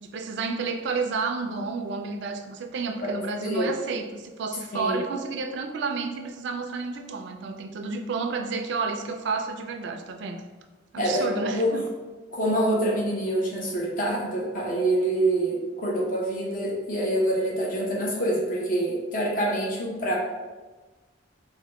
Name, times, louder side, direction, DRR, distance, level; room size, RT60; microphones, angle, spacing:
voice 1, 0.0-10.4 10.9-11.9, right 4 dB, 65° right, 6 dB, 0.4 m, -31 dB
voice 2, 11.0-11.7 12.3-20.1, right 1 dB, 45° left, -3 dB, 0.8 m, -26 dB
4.0 x 2.2 x 3.0 m, 1.3 s
head